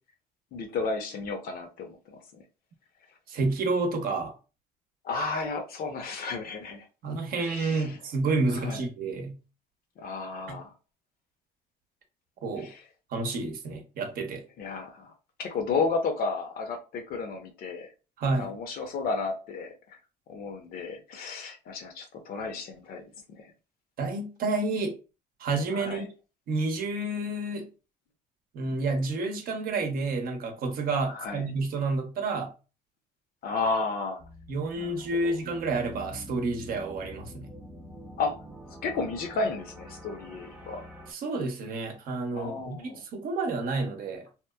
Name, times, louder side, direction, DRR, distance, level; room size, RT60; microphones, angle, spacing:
voice 1, 0.5-2.4 5.0-6.9 7.4-8.0 8.6-8.8 10.0-10.7 12.6-12.8 14.6-15.1 15.4-17.9 18.3-19.7 20.3-23.1 23.4-23.5 25.7-26.0 31.1-31.4 33.4-34.2 34.8-35.0 35.2-35.3 38.2-38.3 38.8-40.8 42.3-43.0, left 4 dB, 60° left, 0.7 m, -32 dB
voice 2, 3.3-4.3 7.0-9.4 10.5-10.6 12.4-12.7 13.1-14.4 18.2-18.5 24.0-25.0 25.4-26.1 26.5-27.7 28.5-32.5 34.5-37.5 41.1-44.2, right 3 dB, 60° right, 0.7 m, -30 dB
sound 1, 34.2-41.1, left 1 dB, 10° right, 0.6 m, -46 dB
2.9 x 2.0 x 2.2 m
cardioid pair, 110°, 17 cm